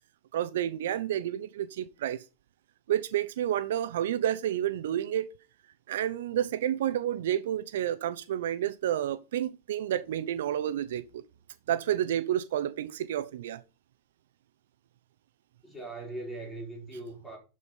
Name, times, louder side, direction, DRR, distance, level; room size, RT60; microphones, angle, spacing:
voice 1, 0.3-2.2 2.9-5.3 5.9-11.2 11.7-13.6, right 11 dB, 80° right, 0.7 m, -30 dB
voice 2, 15.6-17.4, right 2 dB, ahead, 4.2 m, -40 dB
12.0 x 5.0 x 5.6 m
supercardioid pair, 160°, 0 cm